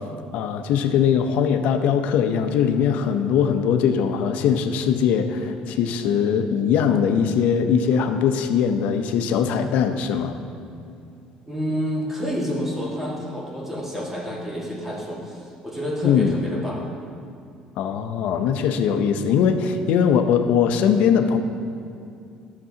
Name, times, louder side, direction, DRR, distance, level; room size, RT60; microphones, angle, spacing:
voice 1, 0.3-10.4 16.0-16.4 17.8-21.4, left 7 dB, 75° left, 8 dB, 0.6 m, -21 dB
voice 2, 11.5-16.8, equal, 10° right, -4 dB, 1.7 m, -29 dB
12.0 x 6.7 x 2.8 m, 2.5 s
cardioid pair, 120°, 3 cm